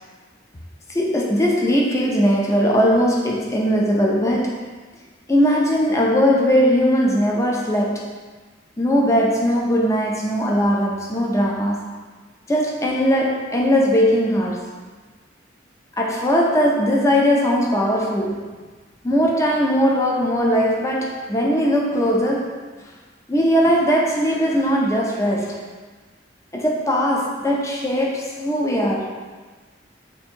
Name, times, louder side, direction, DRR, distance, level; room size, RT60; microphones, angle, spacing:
voice 1, 0.9-4.6 5.3-8.1 8.8-11.9 12.5-14.7 16.0-18.4 19.0-22.6 23.3-25.6 26.5-29.1, equal, 15° left, -1 dB, 0.4 m, -19 dB
2.7 x 2.6 x 4.3 m, 1.4 s
head